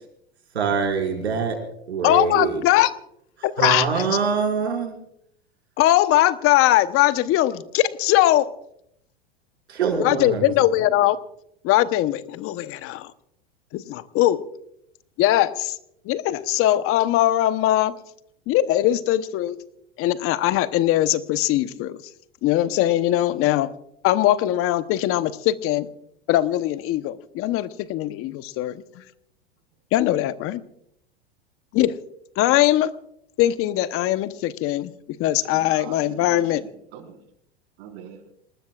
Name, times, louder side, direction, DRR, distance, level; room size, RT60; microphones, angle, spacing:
voice 1, 0.5-1.6 1.9-2.6 3.6-5.0 9.7-10.5, right 5 dB, 90° right, 1 dB, 6.0 m, -24 dB
voice 2, 2.0-2.9 3.4-3.9 5.8-8.5 10.0-11.2 11.6-13.1 13.7-14.4 15.2-15.8 16.0-18.0 18.5-19.6 20.0-22.0 22.4-23.7 24.0-25.9 26.3-29.0 29.9-30.6 31.7-32.0 32.4-32.9 33.4-34.9 35.2-36.6, left 14 dB, 45° left, 13 dB, 1.0 m, -21 dB
voice 3, 10.4-10.9 35.4-37.2 37.8-38.2, right 8 dB, 65° right, 4 dB, 4.8 m, -42 dB
27.5 x 19.5 x 2.5 m, 0.74 s
hypercardioid pair, 100°, 32 cm